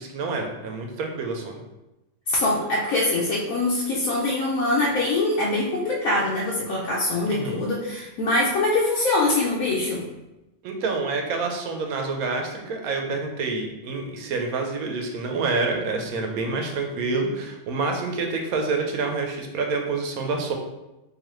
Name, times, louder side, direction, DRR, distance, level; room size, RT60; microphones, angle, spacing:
voice 1, 0.0-1.6 7.3-7.7 10.6-20.5, right 3 dB, 80° right, 3 dB, 1.1 m, -27 dB
voice 2, 2.3-10.0, left 2 dB, 75° left, -5 dB, 1.1 m, -23 dB
3.9 x 2.8 x 3.1 m, 0.98 s
omnidirectional pair, 1.5 m